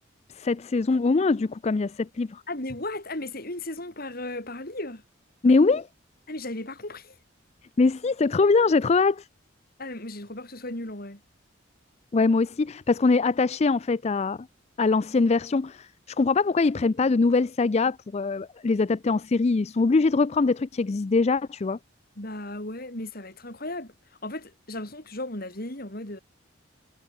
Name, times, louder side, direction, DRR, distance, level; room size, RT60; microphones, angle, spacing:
voice 1, 0.3-2.4 5.4-5.9 7.8-9.3 12.1-14.5 14.8-21.8, left 3 dB, 35° left, 0.4 m, -23 dB
voice 2, 2.5-5.0 6.3-7.2 9.8-11.2 22.2-23.9 24.2-26.2, left 1 dB, 50° left, 5.2 m, -35 dB
head